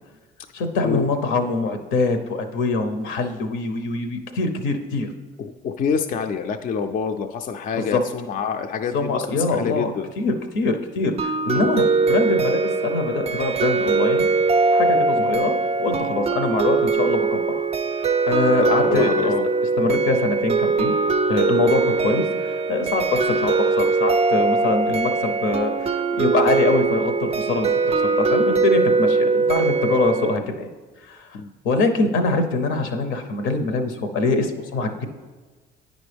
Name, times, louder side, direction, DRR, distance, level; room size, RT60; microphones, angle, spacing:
voice 1, 0.5-5.1 7.7-8.0 8.9-14.3 14.7-15.5 15.8-17.7 18.0-19.3 19.8-20.9 21.3-25.9 26.2-30.7 31.1-31.3 31.6-35.1, left 3 dB, 75° left, 7 dB, 0.8 m, -24 dB
voice 2, 5.4-10.1 11.6-11.7 15.2-15.4 18.5-19.5 31.3-31.5, left 6 dB, 40° left, 6 dB, 0.4 m, -27 dB
sound 1, 11.2-30.4, right 4 dB, 30° right, 0.4 m, -21 dB
9.0 x 5.2 x 3.4 m, 1.4 s
supercardioid pair, 85°, 21 cm